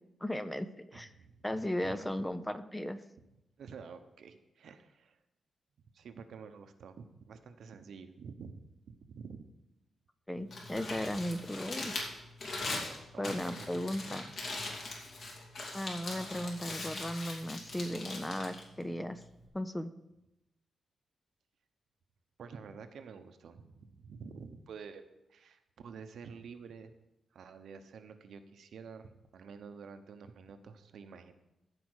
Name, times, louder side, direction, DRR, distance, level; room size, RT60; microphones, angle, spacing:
voice 1, 0.2-1.1 1.4-3.0 10.3-11.9 13.2-14.2 15.7-19.2 19.5-19.9, left 1 dB, 10° left, 11 dB, 0.4 m, -36 dB
voice 2, 0.9-2.1 3.6-5.2 5.9-8.6 8.8-9.4 13.1-14.4 22.4-25.0 25.3-26.9 27.3-31.3, right 5 dB, 70° right, 8 dB, 0.9 m, -49 dB
Crumpling crinkling, 10.3-19.5, left 2 dB, 50° left, 2.6 m, -41 dB
14.5 x 5.0 x 6.3 m, 0.95 s
wide cardioid pair, 160°, 0 cm